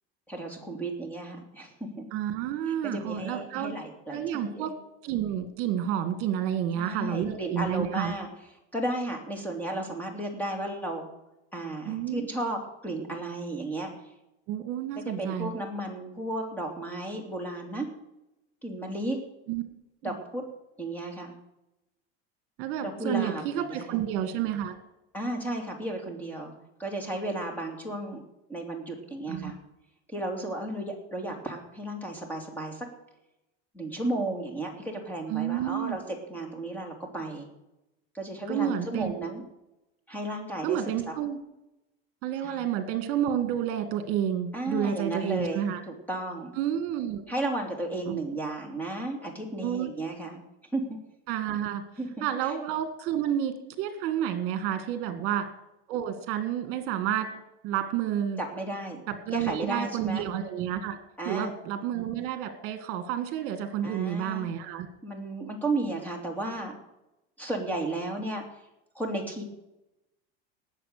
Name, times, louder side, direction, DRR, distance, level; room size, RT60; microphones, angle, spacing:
voice 1, 0.3-2.1 2.7-4.7 6.8-8.3 8.7-11.1 11.5-13.9 15.0-17.9 18.6-19.2 20.0-20.5 20.8-21.3 22.8-24.0 25.1-26.5 26.8-28.2 28.5-29.6 30.1-32.9 33.7-37.5 38.1-39.4 40.1-41.1 42.4-42.6 44.5-46.5 47.3-50.4 50.7-51.0 52.0-52.5 58.4-59.0 59.3-60.2 61.2-61.5 63.8-64.5 65.0-66.7 67.4-68.4 68.9-69.4, right 1 dB, 5° left, 2 dB, 2.7 m, -34 dB
voice 2, 2.1-3.8 4.1-4.7 5.0-8.1 11.8-12.3 14.5-15.5 19.5-19.6 20.0-20.1 22.6-24.7 29.3-29.5 35.3-36.0 38.5-39.1 40.6-41.4 42.2-45.8 46.6-47.2 48.1-48.2 49.6-49.9 51.3-51.8 52.2-55.5 55.9-57.3 57.6-58.4 59.1-61.0 61.3-64.9, right 10 dB, 50° right, 9 dB, 2.0 m, -30 dB
18.5 x 7.3 x 6.7 m, 0.91 s
cardioid pair, 160°, 30 cm